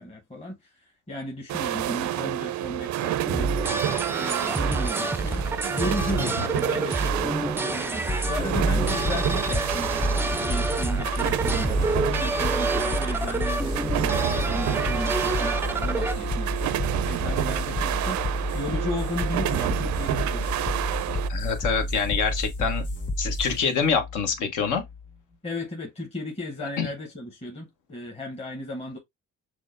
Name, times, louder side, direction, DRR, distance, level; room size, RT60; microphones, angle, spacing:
voice 1, 0.0-3.6 4.2-16.8 17.0-20.5 25.4-29.0, left 1 dB, 20° left, 0.9 m, -35 dB
sound 1, 1.5-21.3, right 13 dB, 70° right, 0.4 m, -30 dB
sound 2, 3.2-16.1, right 2 dB, 10° right, 0.3 m, -28 dB
sound 3, 8.1-25.1, left 1 dB, 35° left, 2.0 m, -30 dB
voice 2, 21.3-22.8 23.2-24.8 26.8-26.9, left 6 dB, 80° left, 1.1 m, -26 dB
6.1 x 2.1 x 2.5 m
cardioid pair, 90°, 30 cm